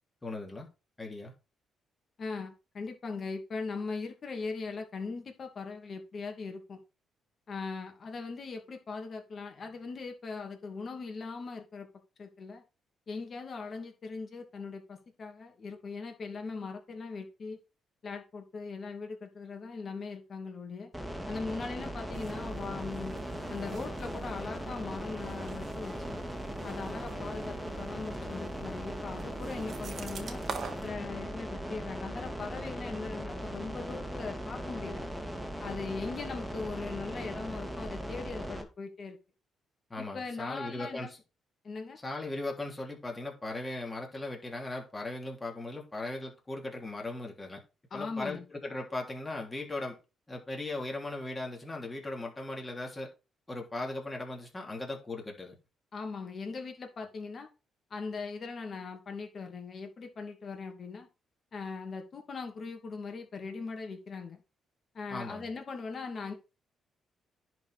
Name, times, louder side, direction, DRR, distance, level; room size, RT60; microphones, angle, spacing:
voice 1, 0.2-0.7 1.0-1.3 39.9-41.2 42.0-47.6 47.9-50.0 50.3-53.1 53.5-55.5 65.1-65.5, left 2 dB, 20° left, 3.3 m, -38 dB
voice 2, 2.2-6.8 7.5-11.9 12.2-12.6 13.1-17.6 18.0-20.9 21.3-23.1 23.5-26.2 26.6-30.4 30.8-35.0 35.6-39.2 40.0-41.1 41.6-42.0 47.9-48.4 55.9-57.5 57.9-61.1 61.5-64.4 64.9-66.3, left 4 dB, 45° left, 2.6 m, -40 dB
sound 1, 20.9-38.6, equal, 5° right, 2.2 m, -39 dB
sound 2, 22.1-30.9, right 5 dB, 50° right, 1.5 m, -45 dB
10.5 x 4.7 x 5.0 m
cardioid pair, 90°, 0 cm